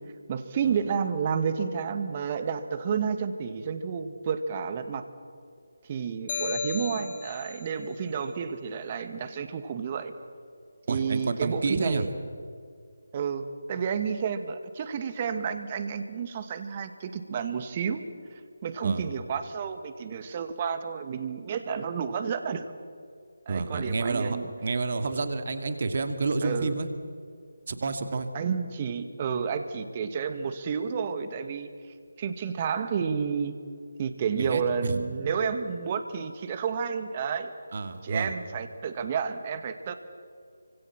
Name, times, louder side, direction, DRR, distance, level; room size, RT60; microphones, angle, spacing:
voice 1, 0.3-5.0 5.8-10.1 10.9-12.1 13.1-18.0 18.6-22.7 23.5-24.5 26.4-26.8 28.3-31.7 32.2-33.5 34.0-37.5 38.0-39.9, right 6 dB, 30° right, 9 dB, 2.0 m, -31 dB
sound 1, 6.3-7.7, left 4 dB, 35° left, 5.0 m, -33 dB
voice 2, 10.9-12.1 18.8-19.1 23.5-24.4 24.6-26.9 27.7-28.3 34.4-35.0 37.7-38.3, right 3 dB, 45° right, 8 dB, 2.4 m, -29 dB
29.0 x 25.5 x 7.5 m, 2.2 s
figure-of-eight pair, 155°, 0 cm